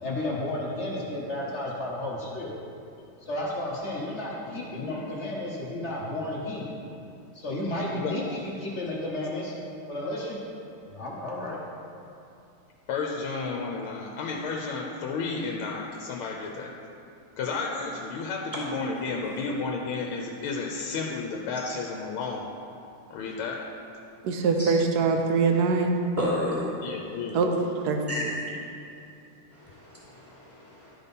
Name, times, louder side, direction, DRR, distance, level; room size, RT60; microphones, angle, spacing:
voice 1, 0.0-2.5 3.2-6.7 7.3-9.5 9.9-10.4 10.8-11.6, left 1 dB, 50° left, -3 dB, 0.8 m, -32 dB
voice 2, 4.5-5.1 7.9-8.2 12.9-16.7 17.4-22.6 23.1-23.7 26.8-27.5, left 4 dB, 75° left, 0 dB, 1.5 m, -32 dB
voice 3, 24.2-25.9 27.3-27.5 27.8-28.0, right 4 dB, 85° right, 4 dB, 0.8 m, -23 dB
voice 4, 26.2-26.7 28.1-28.4 29.5-30.9, left 1 dB, 5° left, -6 dB, 1.4 m, -32 dB
12.0 x 4.2 x 5.2 m, 2.6 s
omnidirectional pair, 2.4 m